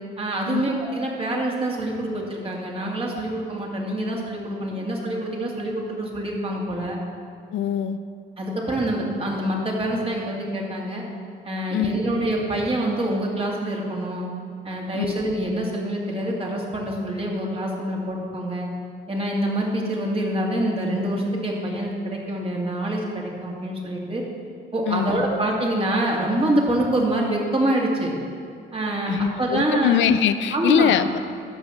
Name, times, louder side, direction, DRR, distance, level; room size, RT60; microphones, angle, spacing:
voice 1, 0.2-7.0 8.4-11.0 11.4-14.3 14.6-18.7 19.1-24.2 24.7-28.1 28.7-30.0 30.5-31.0, right 1 dB, 30° right, -2 dB, 2.3 m, -26 dB
voice 2, 7.5-8.0 11.7-11.9 14.9-15.1 24.9-25.3 29.1-31.2, left 10 dB, 75° left, 12 dB, 0.5 m, -22 dB
13.5 x 5.6 x 5.7 m, 2.5 s
cardioid pair, 90°, 20 cm